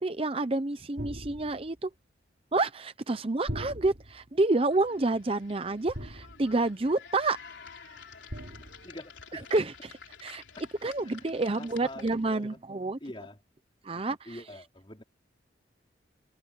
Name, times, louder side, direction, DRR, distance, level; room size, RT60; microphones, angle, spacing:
voice 1, 0.0-1.9 2.5-7.4 9.5-10.4 10.8-13.0 13.8-14.2, right 2 dB, 30° right, 0.7 m, -29 dB
sound 1, 1.0-1.8 3.5-4.3 5.9-6.7 8.3-8.9, equal, 60° right, 3.5 m, -40 dB
sound 2, 4.7-12.4, left 5 dB, 90° left, 3.5 m, -50 dB
voice 2, 8.8-9.5 10.6-10.7 11.0-12.6 13.0-13.4 13.9-15.0, left 1 dB, 30° left, 4.5 m, -46 dB
head